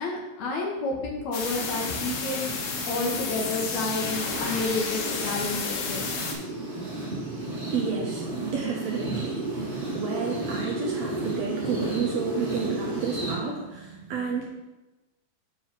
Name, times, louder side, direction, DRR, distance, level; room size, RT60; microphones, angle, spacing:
voice 1, 0.0-6.2, left 2 dB, 70° left, -1 dB, 2.0 m, -30 dB
sound 1, 1.3-6.4, left 5 dB, 85° left, 2.6 m, -32 dB
sound 2, 1.4-13.3, right 2 dB, 40° right, 1.1 m, -34 dB
voice 2, 7.2-14.4, right 5 dB, 70° right, -2 dB, 1.8 m, -31 dB
7.5 x 3.2 x 5.8 m, 1.0 s
omnidirectional pair, 3.8 m